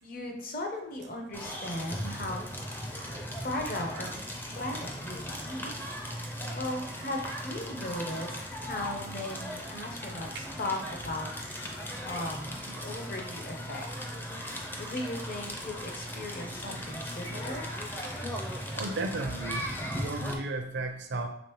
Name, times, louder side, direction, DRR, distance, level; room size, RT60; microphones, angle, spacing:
voice 1, 0.0-2.8 3.4-4.1 4.6-5.8 6.2-11.8 12.1-14.0 14.8-17.7, left 1 dB, 50° left, 2 dB, 0.8 m, -37 dB
Crackle, 1.3-20.3, equal, 10° left, 0.4 m, -38 dB
voice 2, 18.7-19.7 19.9-21.3, right 2 dB, 70° right, 3 dB, 0.5 m, -34 dB
5.2 x 3.4 x 3.0 m, 0.75 s
head